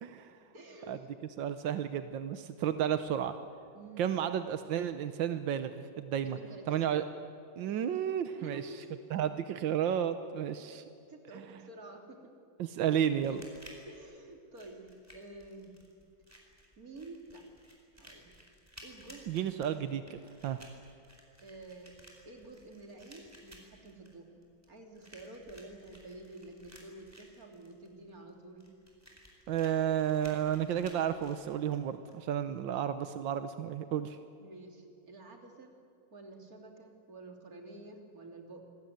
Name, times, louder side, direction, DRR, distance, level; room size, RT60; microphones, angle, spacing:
voice 1, 0.0-0.4 0.9-1.0 1.4-3.3 4.0-6.4 6.7-7.0 7.6-8.7 9.1-10.8 11.3-11.4 12.6-13.5 19.3-20.6 29.5-34.2, right 9 dB, 90° right, 10 dB, 1.7 m, -32 dB
voice 2, 0.5-1.0 3.7-4.1 6.2-6.9 8.4-9.0 11.1-12.3 13.7-15.8 16.8-17.5 18.0-18.3 18.8-19.3 21.4-21.9 22.3-24.3 24.7-28.7 34.4-35.7 36.1-38.6, right 2 dB, 50° right, 3 dB, 3.6 m, -49 dB
sound 1, 13.1-32.1, equal, 10° right, 4.7 m, -57 dB
27.0 x 20.5 x 9.4 m, 2.4 s
omnidirectional pair, 2.0 m